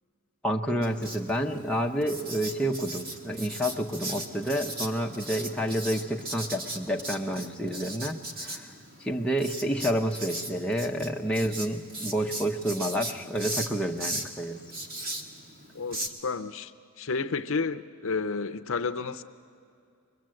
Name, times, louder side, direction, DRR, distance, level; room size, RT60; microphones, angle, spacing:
voice 1, 0.4-8.7 9.0-14.6, equal, 5° left, -1 dB, 0.8 m, -29 dB
Writing, 0.8-16.1, right 1 dB, 40° right, 1.7 m, -38 dB
voice 2, 15.7-16.7 17.0-19.2, left 4 dB, 65° left, 10 dB, 0.6 m, -31 dB
23.5 x 21.0 x 7.7 m, 2.4 s
head